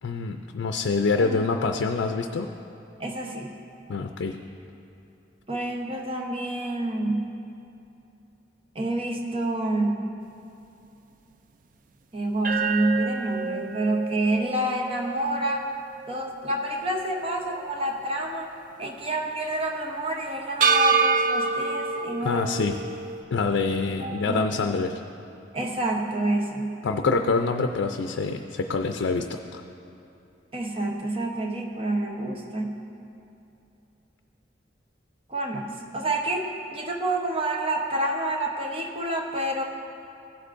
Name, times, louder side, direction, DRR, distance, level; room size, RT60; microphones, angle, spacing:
voice 1, 0.0-2.5 3.9-4.4 22.2-22.8 23.3-25.0 26.8-29.6, left 4 dB, 80° left, 5 dB, 0.4 m, -26 dB
voice 2, 3.0-3.6 5.5-7.4 8.7-10.1 12.1-15.7 16.1-18.5 18.8-22.4 24.0-24.5 25.5-26.8 30.5-32.8 35.3-39.6, right 1 dB, 30° right, 1 dB, 0.8 m, -28 dB
sound 1, 12.4-16.7 17.1-17.2 20.6-23.2, right 5 dB, 45° right, 0.4 m, -27 dB
16.5 x 8.1 x 2.5 m, 2.8 s
head